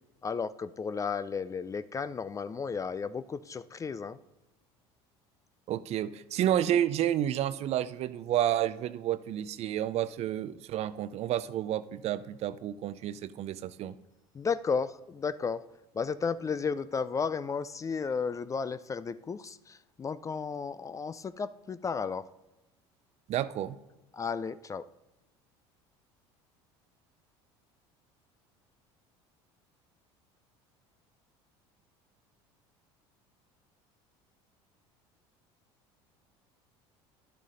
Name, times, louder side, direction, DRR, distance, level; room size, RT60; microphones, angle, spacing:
voice 1, 0.2-4.2 14.3-15.6 15.9-22.3 24.1-24.9, left 5 dB, 25° left, 16 dB, 0.4 m, -33 dB
voice 2, 5.7-13.9 23.3-23.8, right 11 dB, 50° right, 15 dB, 0.5 m, -30 dB
10.5 x 6.7 x 3.8 m, 1.0 s
hypercardioid pair, 80°, 14 cm